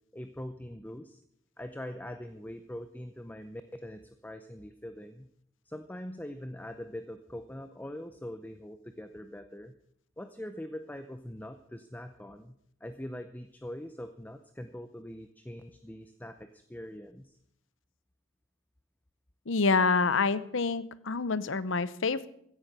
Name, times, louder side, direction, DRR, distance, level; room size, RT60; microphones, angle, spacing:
voice 1, 0.1-1.2 1.6-5.3 5.7-9.7 10.2-17.3, left 1 dB, 10° left, 9 dB, 0.7 m, -43 dB
voice 2, 19.5-22.3, left 4 dB, 75° left, 16 dB, 0.8 m, -27 dB
15.5 x 10.5 x 6.7 m, 0.70 s
head